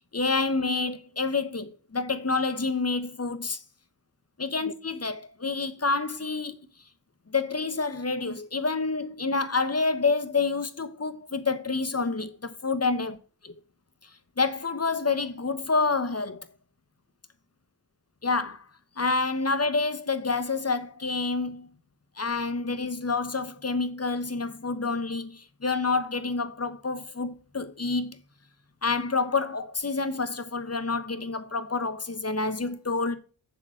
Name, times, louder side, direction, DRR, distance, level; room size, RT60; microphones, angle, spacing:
voice 1, 0.1-3.6 4.4-6.6 7.3-13.1 13.4-13.5 14.4-16.5 18.2-18.6 19.0-21.7 22.2-28.2 28.8-33.2, left 4 dB, 35° left, 1.1 m, -28 dB
7.1 x 6.5 x 7.8 m
wide cardioid pair, 70°, 43 cm